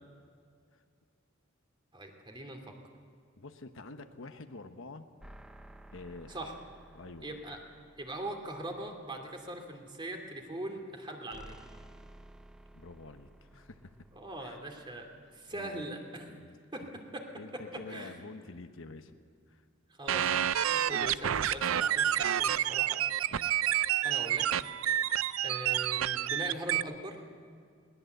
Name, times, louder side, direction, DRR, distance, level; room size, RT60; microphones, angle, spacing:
voice 1, 1.9-2.6 6.3-6.5 7.2-7.6 8.0-11.6 14.1-15.1 15.3-16.3 16.7-16.8 17.1-17.2 17.9-18.1 20.0-20.3 20.8-23.0 24.0-24.5 25.4-27.2, right 1 dB, 25° right, 3 dB, 2.7 m, -41 dB
voice 2, 3.4-5.1 5.9-6.5 6.9-7.4 12.7-13.9 14.4-14.6 15.2-15.9 16.3-16.9 17.4-19.2 19.5-19.6 23.3-23.5, left 3 dB, 70° left, 8 dB, 1.1 m, -48 dB
sound 1, 5.2-9.7 11.3-16.1, right 1 dB, 5° right, 0.7 m, -55 dB
sound 2, 20.1-26.8, right 11 dB, 85° right, 0.5 m, -29 dB
21.5 x 19.5 x 8.0 m, 2.1 s
head